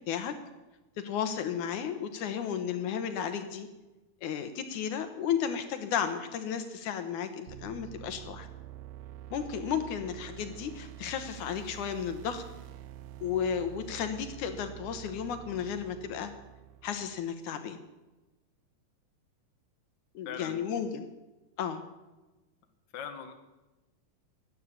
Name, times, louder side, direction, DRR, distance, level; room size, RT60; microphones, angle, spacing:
voice 1, 1.0-3.7 4.2-8.5 9.3-12.4 13.2-16.3 16.8-17.8 20.1-21.1 21.6-21.8, left 8 dB, 70° left, 8 dB, 2.4 m, -33 dB
sound 1, 7.5-17.3, right 12 dB, 80° right, 1.5 m, -47 dB
voice 2, 20.2-20.7 22.9-23.3, left 7 dB, 45° left, 5 dB, 1.5 m, -40 dB
16.5 x 11.0 x 7.3 m, 1.1 s
omnidirectional pair, 3.8 m